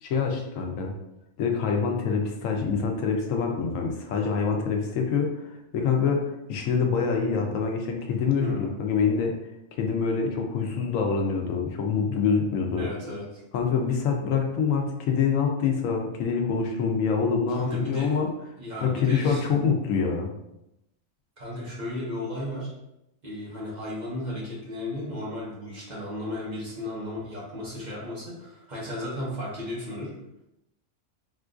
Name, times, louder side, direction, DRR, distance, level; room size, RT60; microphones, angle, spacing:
voice 1, 0.0-0.9 1.4-5.4 5.7-9.3 9.8-12.9 13.5-18.3 18.8-20.3, left 5 dB, 85° left, 2 dB, 1.0 m, -25 dB
voice 2, 8.4-8.8 12.8-13.4 17.5-18.2 18.6-19.4 21.4-22.7 23.2-30.1, left 1 dB, 40° right, -6 dB, 0.9 m, -34 dB
3.6 x 2.4 x 2.4 m, 0.87 s
omnidirectional pair, 1.3 m